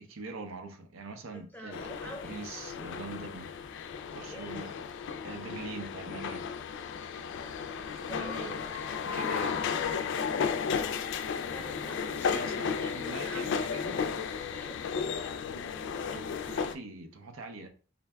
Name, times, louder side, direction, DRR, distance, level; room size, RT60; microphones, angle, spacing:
voice 1, 0.0-1.9 2.2-3.5 4.1-4.8 5.2-6.5 8.1-9.7 12.3-14.0 16.1-17.7, right 3 dB, 80° right, 0.6 m, -43 dB
voice 2, 1.3-2.4 4.2-4.6 7.6-8.7 11.5-14.2 14.5-14.8, equal, 10° left, 0.8 m, -47 dB
sound 1, 1.7-16.7, left 6 dB, 65° left, 0.3 m, -34 dB
3.9 x 2.2 x 3.3 m
head